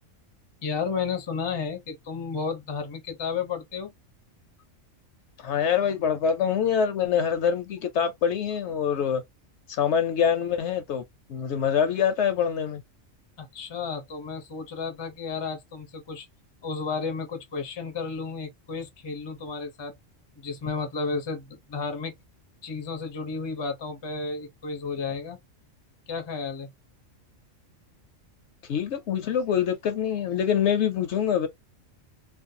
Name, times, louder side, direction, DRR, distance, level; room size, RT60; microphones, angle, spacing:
voice 1, 0.6-3.9 13.4-16.3 16.6-19.9 20.4-22.1 22.6-25.4 26.1-26.7, left 5 dB, 35° left, 0.4 m, -32 dB
voice 2, 5.4-9.2 9.7-11.0 11.3-12.8 28.7-31.5, left 8 dB, 70° left, 0.8 m, -25 dB
2.5 x 2.1 x 2.6 m
omnidirectional pair, 1.3 m